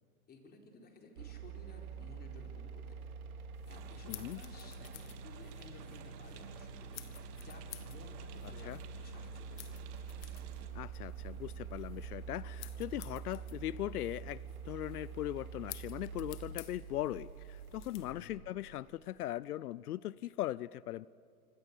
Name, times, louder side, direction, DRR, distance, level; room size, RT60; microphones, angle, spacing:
voice 1, 0.3-3.1 3.3-9.8 18.1-18.4, left 3 dB, 20° left, 3 dB, 4.3 m, -56 dB
sound 1, 1.2-18.9, right 6 dB, 75° right, 2.3 m, -46 dB
sound 2, 3.5-18.1, left 17 dB, 50° left, 2.0 m, -55 dB
sound 3, 3.7-10.7, right 9 dB, 50° right, 2.9 m, -55 dB
voice 2, 4.1-4.4 8.6-8.8 10.7-21.1, left 14 dB, 80° left, 20 dB, 0.6 m, -39 dB
26.5 x 24.5 x 8.4 m, 2.3 s
hypercardioid pair, 130°, 44 cm